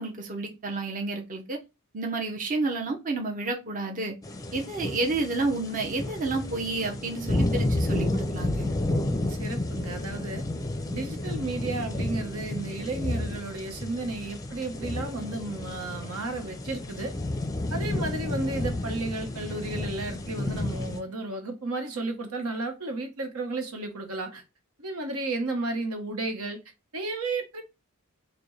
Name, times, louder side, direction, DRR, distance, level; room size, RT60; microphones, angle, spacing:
voice 1, 0.0-1.6 1.9-4.1 4.5-8.7, right 3 dB, 40° right, 0.7 m, -30 dB
sound 1, 4.2-21.0, left 1 dB, 15° left, 0.5 m, -31 dB
voice 2, 9.3-10.4 10.9-17.1 17.7-24.4 24.8-26.6 26.9-27.6, right 2 dB, 80° right, 1.0 m, -33 dB
5.0 x 2.2 x 3.1 m
head